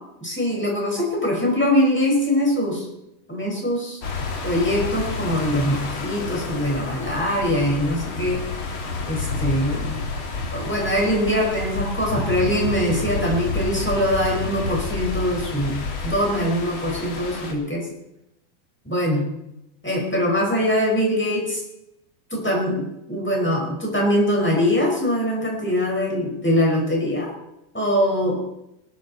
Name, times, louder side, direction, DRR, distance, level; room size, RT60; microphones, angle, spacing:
voice 1, 0.2-2.9 3.3-4.0 4.4-8.4 9.1-10.0 10.5-15.8 16.0-17.9 18.8-19.2 19.8-21.6 22.3-27.3 27.7-28.4, equal, 5° left, -1 dB, 4.7 m, -22 dB
sound 1, 4.0-17.5, left 3 dB, 40° left, 2.2 m, -29 dB
19.0 x 13.5 x 4.3 m, 0.84 s
omnidirectional pair, 4.4 m